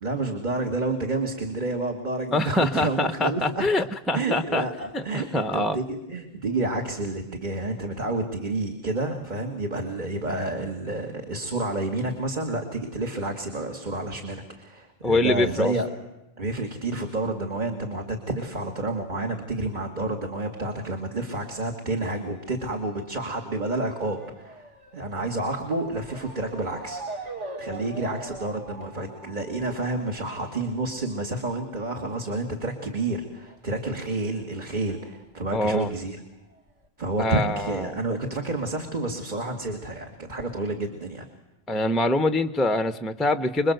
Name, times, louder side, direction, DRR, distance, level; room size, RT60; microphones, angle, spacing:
voice 1, 0.0-3.9 4.1-15.9 16.4-24.6 24.9-27.3 27.6-36.2 37.0-41.2, right 2 dB, 40° right, 3 dB, 2.4 m, -29 dB
voice 2, 2.3-4.6 4.9-5.8 15.0-15.7 35.5-35.9 37.2-37.9 41.7-43.7, left 2 dB, ahead, 10 dB, 0.8 m, -24 dB
Motor vehicle (road) / Siren, 21.4-34.4 34.7-35.9 36.5-36.6 36.8-36.9, right 2 dB, 75° right, 2.6 m, -43 dB
27.5 x 21.5 x 8.0 m, 0.97 s
omnidirectional pair, 1.2 m